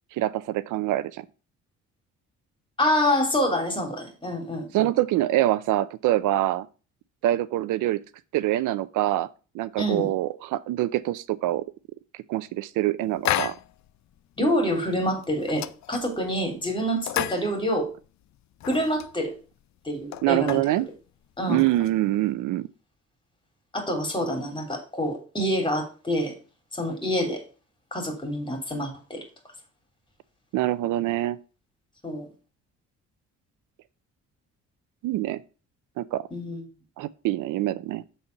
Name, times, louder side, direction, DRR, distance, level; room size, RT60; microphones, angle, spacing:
voice 1, 0.1-1.2 4.7-6.7 7.2-8.0 8.3-9.3 9.5-11.7 12.3-13.5 20.2-20.9 21.5-22.7 30.5-31.4 35.0-35.4 36.0-36.3 37.0-38.0, right 15 dB, 90° right, 0.6 m, -25 dB
voice 2, 2.8-4.9 9.8-10.1 14.4-17.9 18.6-19.3 19.8-20.6 21.4-21.6 23.7-26.3 26.7-27.4 27.9-29.2 32.0-32.3 36.3-36.6, equal, 15° left, 3.2 m, -27 dB
sound 1, 13.3-13.9 14.2-14.3 14.7-14.9 15.2-16.4 16.9-18.1 18.4-19.1 19.6-19.7 19.9-20.8 21.4-22.3, left 14 dB, 65° left, 0.5 m, -31 dB
7.2 x 4.2 x 6.5 m
cardioid pair, 90°, 30 cm